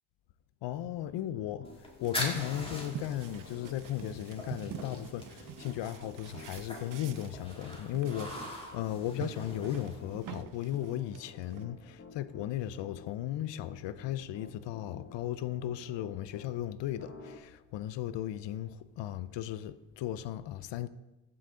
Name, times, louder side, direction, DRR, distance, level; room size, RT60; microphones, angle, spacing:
voice 1, 0.6-1.7 2.0-20.9, left 12 dB, 75° left, 0.6 m, -36 dB
Piano, 1.3-16.5 17.0-17.4, left 4 dB, 30° left, 1.3 m, -51 dB
sound 1, 1.6-10.3, left 1 dB, 10° left, 2.5 m, -43 dB
sound 2, 2.0-8.7 9.0-11.7, right 10 dB, 50° right, 0.6 m, -47 dB
14.5 x 6.0 x 3.8 m
cardioid pair, 85°, 43 cm